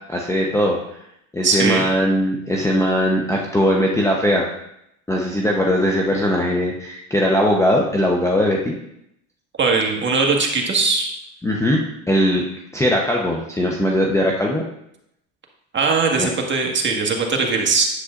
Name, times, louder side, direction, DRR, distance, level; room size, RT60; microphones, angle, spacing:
voice 1, 0.1-0.8 1.3-4.5 5.1-8.8 11.4-11.8 12.1-12.4 12.7-14.6 16.2-16.3, equal, 5° left, -1 dB, 0.9 m, -19 dB
voice 2, 1.4-1.8 9.6-11.1 15.7-17.9, right 4 dB, 25° right, 1 dB, 1.7 m, -20 dB
10.0 x 7.8 x 2.5 m, 0.78 s
supercardioid pair, 105°, 43 cm